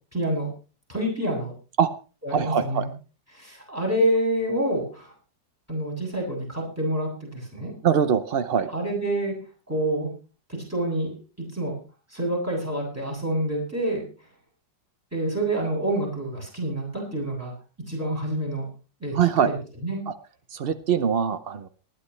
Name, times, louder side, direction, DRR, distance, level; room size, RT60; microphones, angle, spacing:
voice 1, 0.1-0.5 0.9-1.5 2.2-2.9 3.3-5.1 5.7-7.7 8.7-9.3 9.7-10.1 10.5-11.2 11.5-11.7 12.1-14.1 15.1-17.5 17.9-18.6 19.0-19.2 19.5-19.6 19.8-20.0, right 1 dB, 5° right, -1 dB, 7.5 m, -27 dB
voice 2, 2.3-2.9 7.8-8.7 19.1-19.5 20.1-20.2 20.5-21.7, right 7 dB, 75° right, 11 dB, 0.5 m, -22 dB
20.0 x 12.0 x 3.2 m, 0.35 s
omnidirectional pair, 2.0 m